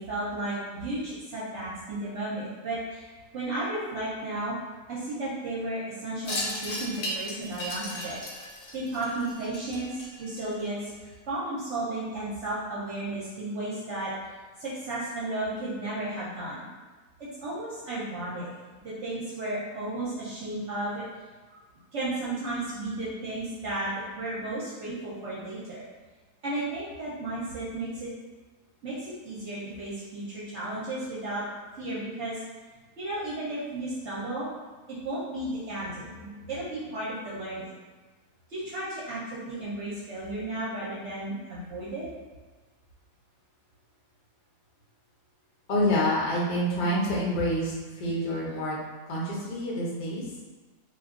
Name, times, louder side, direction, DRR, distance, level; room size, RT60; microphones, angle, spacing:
voice 1, 0.0-3.1 3.3-4.5 4.9-8.2 8.7-14.1 14.6-16.6 17.2-18.5 18.8-21.0 21.5-21.6 21.9-25.9 26.4-28.1 28.8-31.4 31.7-32.4 33.0-34.5 34.9-37.7 38.5-42.1, right 2 dB, 60° right, -8 dB, 0.9 m, -34 dB
Wind chime, 6.2-10.9, equal, 70° left, 1.0 m, -36 dB
voice 2, 45.7-48.8 49.1-50.3, equal, 45° left, -5 dB, 0.6 m, -27 dB
2.4 x 2.3 x 3.5 m, 1.3 s
omnidirectional pair, 1.6 m